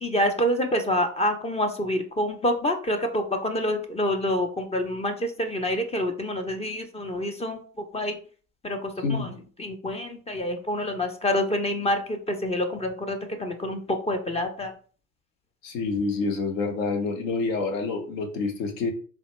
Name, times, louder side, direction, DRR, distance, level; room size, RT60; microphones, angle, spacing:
voice 1, 0.0-8.2 8.6-14.7, left 1 dB, 15° left, 6 dB, 0.5 m, -27 dB
voice 2, 15.6-18.9, left 4 dB, 70° left, 3 dB, 1.1 m, -27 dB
3.9 x 2.4 x 3.1 m, 0.41 s
hypercardioid pair, 75°, 41 cm